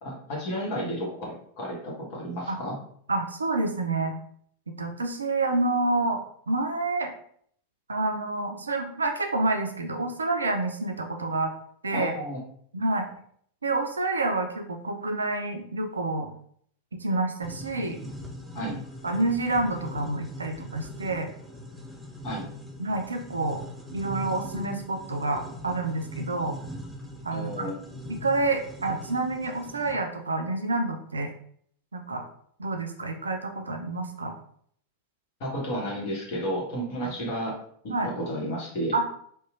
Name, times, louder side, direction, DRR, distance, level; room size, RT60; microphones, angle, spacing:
voice 1, 0.0-2.8 11.9-12.4 18.5-18.7 22.2-22.4 27.3-27.7 35.4-37.6 37.8-38.9, equal, 45° left, -3 dB, 1.1 m, -32 dB
voice 2, 3.1-4.2 4.8-7.1 7.9-11.5 11.8-12.1 12.7-13.1 13.6-16.3 17.0-18.0 19.0-21.3 22.8-23.6 23.9-26.6 27.2-27.7 28.1-31.3 31.9-32.3 32.6-34.4 37.0-37.1 37.9-38.1 38.9-39.1, right 2 dB, 75° right, 5 dB, 0.3 m, -28 dB
sound 1, 17.4-29.9, equal, ahead, 0.5 m, -41 dB
3.0 x 2.1 x 2.4 m, 0.63 s
figure-of-eight pair, 90°, 0 cm